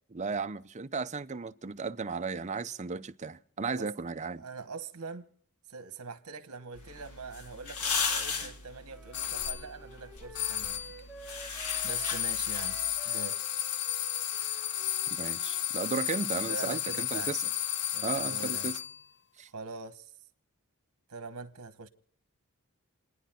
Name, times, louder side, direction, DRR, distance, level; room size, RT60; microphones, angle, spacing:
voice 1, 0.1-4.4 15.2-17.4 18.0-18.8 19.4-19.5, right 4 dB, 30° right, 0.6 m, -35 dB
voice 2, 4.4-5.3 5.7-10.8 11.8-12.8 13.1-13.4 16.5-17.3 17.9-18.7 19.5-20.1 21.1-21.9, right 4 dB, 75° right, 1.1 m, -43 dB
sound 1, 6.7-12.9, left 5 dB, 90° left, 1.9 m, -37 dB
Wind instrument woodwind instrument, 8.9-16.3, right 3 dB, ahead, 3.1 m, -52 dB
sound 2, 9.1-9.6 10.3-11.0 11.6-19.0, left 10 dB, 50° left, 0.6 m, -33 dB
29.5 x 10.0 x 4.4 m
head